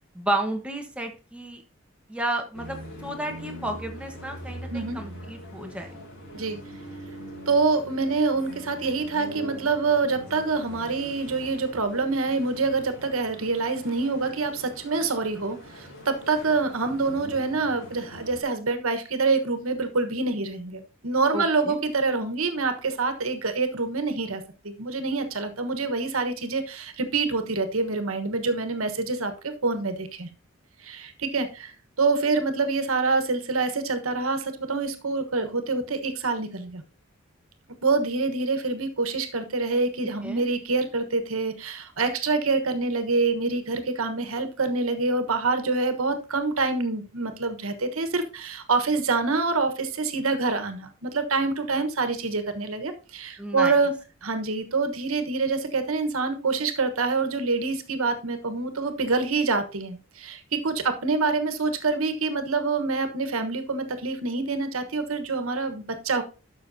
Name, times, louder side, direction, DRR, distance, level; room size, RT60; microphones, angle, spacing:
voice 1, 0.1-1.6 2.1-6.0 21.3-21.8 40.2-40.4 53.4-53.7, right 1 dB, 5° right, 3 dB, 1.3 m, -32 dB
sound 1, 2.5-18.4, equal, 55° left, 4.0 m, -42 dB
voice 2, 4.7-5.0 6.3-6.6 7.5-30.3 30.8-36.8 37.8-53.9 54.2-66.2, right 3 dB, 85° right, 8 dB, 1.3 m, -26 dB
12.0 x 6.2 x 2.7 m, 0.33 s
head